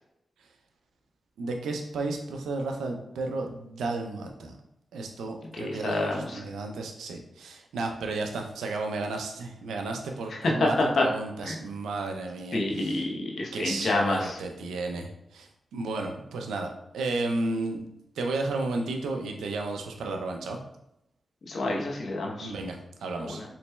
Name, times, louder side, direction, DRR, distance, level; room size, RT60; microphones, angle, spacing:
voice 1, 1.4-4.5 4.9-13.0 13.5-17.8 18.2-20.6 22.4-23.4, right 3 dB, 90° right, 3 dB, 0.4 m, -33 dB
voice 2, 5.5-6.4 10.3-11.1 11.4-11.6 12.5-14.4 21.5-22.5 23.2-23.4, left 2 dB, 70° left, 0 dB, 0.8 m, -28 dB
4.0 x 3.1 x 2.2 m, 0.83 s
supercardioid pair, 40°, 0 cm